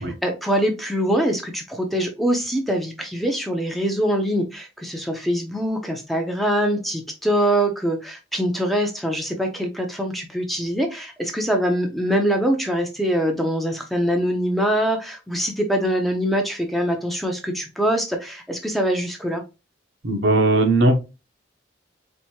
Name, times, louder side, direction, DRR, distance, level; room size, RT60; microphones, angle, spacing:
voice 1, 0.0-19.4, equal, ahead, 2 dB, 0.6 m, -23 dB
voice 2, 20.0-21.0, right 2 dB, 60° right, 5 dB, 0.8 m, -18 dB
4.4 x 2.7 x 2.8 m, 0.27 s
head